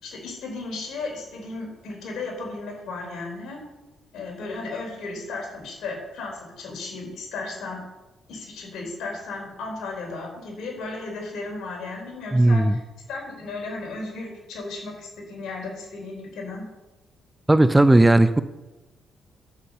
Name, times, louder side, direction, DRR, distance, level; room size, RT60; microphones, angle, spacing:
voice 1, 0.0-3.6 4.1-7.8 8.3-12.8 13.1-16.6, left 3 dB, 75° left, -1 dB, 4.7 m, -35 dB
voice 2, 12.3-12.8 17.5-18.4, right 2 dB, 10° right, 12 dB, 0.5 m, -16 dB
10.5 x 8.3 x 5.7 m, 1.1 s
cardioid pair, 90°, 0 cm